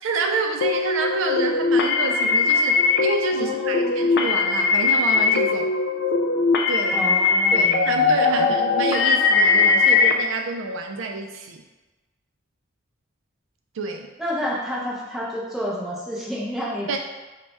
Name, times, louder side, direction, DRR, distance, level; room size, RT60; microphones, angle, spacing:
voice 1, 0.0-5.7 6.7-7.0 7.5-11.6 13.7-14.1 16.9-17.0, right 4 dB, 70° right, 3 dB, 0.4 m, -28 dB
sound 1, 0.6-10.1, left 4 dB, 55° left, 0.3 m, -20 dB
voice 2, 3.4-3.9 6.9-8.5 14.2-17.0, equal, ahead, -6 dB, 0.7 m, -30 dB
3.3 x 2.2 x 4.0 m, 1.2 s
head